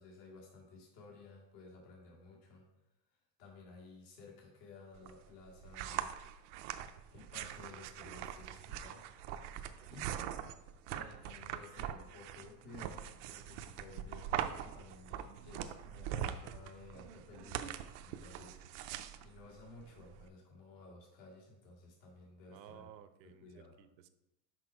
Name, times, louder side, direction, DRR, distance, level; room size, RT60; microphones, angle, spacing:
voice 1, 0.0-2.6 3.4-6.1 7.1-9.0 9.9-10.1 10.9-18.8 19.2-22.9 23.2-23.7, left 3 dB, 70° left, -2 dB, 2.2 m, -55 dB
sound 1, 5.0-20.3, right 10 dB, 50° right, 0.5 m, -43 dB
voice 2, 22.5-24.1, right 10 dB, 80° right, 10 dB, 0.8 m, -56 dB
6.1 x 5.5 x 4.4 m, 0.91 s
supercardioid pair, 160°, 50 cm